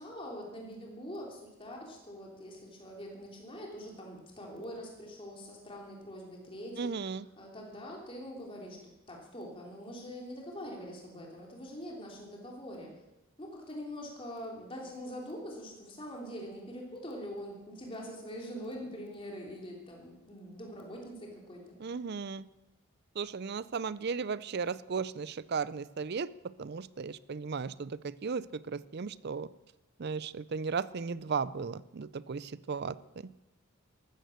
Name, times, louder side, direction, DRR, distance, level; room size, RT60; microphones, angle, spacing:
voice 1, 0.0-12.9 13.4-21.8, equal, 25° left, -1 dB, 3.3 m, -44 dB
voice 2, 6.8-7.2 21.8-22.5 23.2-26.3 26.6-29.5 30.0-33.3, right 5 dB, 45° right, 19 dB, 0.4 m, -36 dB
14.5 x 13.0 x 6.5 m, 0.99 s
head